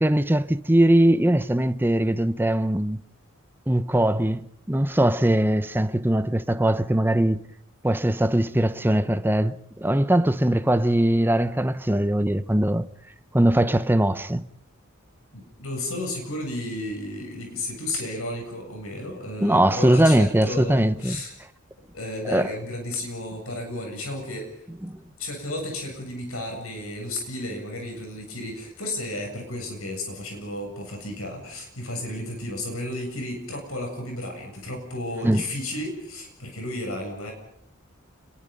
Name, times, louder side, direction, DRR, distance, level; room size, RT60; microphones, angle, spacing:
voice 1, 0.0-3.0 3.7-7.4 7.8-12.9 13.3-14.4 19.4-21.2 22.3-22.5 24.8-25.0 35.2-35.4, right 1 dB, 10° right, 0.9 m, -21 dB
voice 2, 15.3-21.4 21.9-24.7 25.2-37.3, left 1 dB, 85° left, 7.7 m, -33 dB
29.5 x 22.5 x 5.5 m
head